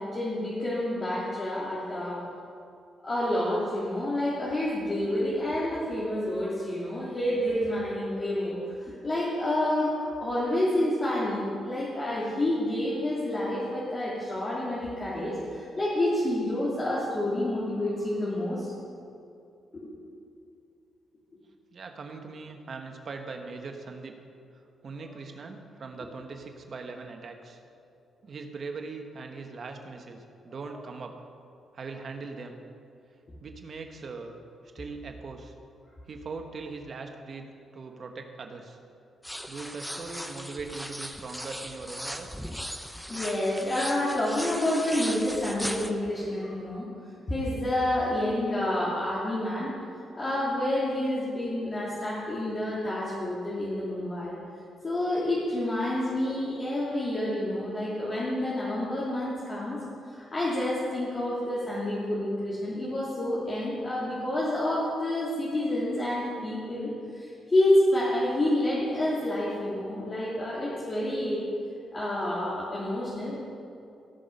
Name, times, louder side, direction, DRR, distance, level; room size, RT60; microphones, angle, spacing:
voice 1, 0.0-2.2 3.0-18.7 19.7-19.9 25.0-25.1 30.5-30.6 43.1-46.9 47.3-49.7 50.1-54.3 54.8-71.5 71.9-73.4, left 1 dB, 35° left, -8 dB, 3.0 m, -28 dB
voice 2, 21.7-24.1 24.8-27.6 28.2-31.2 31.7-32.6 33.4-34.4 34.7-35.5 36.1-37.5 37.7-38.8 39.5-42.3, right 4 dB, 55° right, 4 dB, 1.4 m, -40 dB
sound 1, 39.2-45.9, equal, ahead, 0.8 m, -38 dB
17.5 x 6.1 x 5.5 m, 2.6 s
cardioid pair, 70°, 0 cm